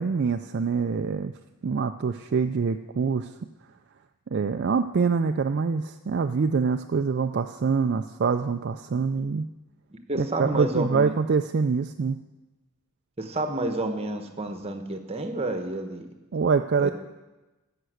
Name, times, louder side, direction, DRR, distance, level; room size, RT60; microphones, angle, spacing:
voice 1, 0.0-1.3 1.6-3.3 4.3-9.5 10.2-12.2 16.3-16.9, right 5 dB, 50° right, 7 dB, 0.4 m, -25 dB
voice 2, 10.1-11.1 13.2-16.1 16.8-16.9, right 2 dB, 25° right, 6 dB, 1.1 m, -29 dB
14.5 x 6.0 x 7.9 m, 1.1 s
head